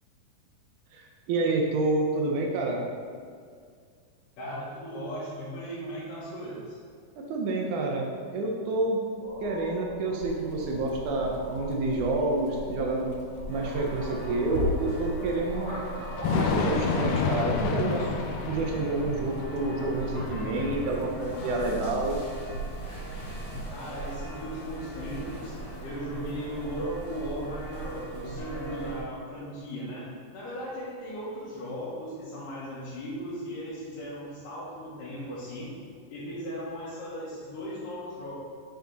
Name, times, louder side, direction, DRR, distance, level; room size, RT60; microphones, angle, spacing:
voice 1, 0.9-2.8 7.2-9.0 9.4-13.1 13.5-15.8 16.3-18.1 18.5-22.2, right 2 dB, 75° right, 0 dB, 1.9 m, -28 dB
voice 2, 4.4-6.8 23.7-25.5 25.8-30.1 30.3-35.7 36.1-38.3, equal, 75° left, -10 dB, 2.8 m, -37 dB
sound 1, 9.2-20.2, equal, 50° right, 2.0 m, -39 dB
Thunder / Rain, 10.2-23.7, left 5 dB, 90° left, 2.4 m, -33 dB
sound 2, 13.5-29.0, right 2 dB, 55° left, 1.5 m, -39 dB
6.6 x 4.9 x 3.9 m, 2.2 s
omnidirectional pair, 4.0 m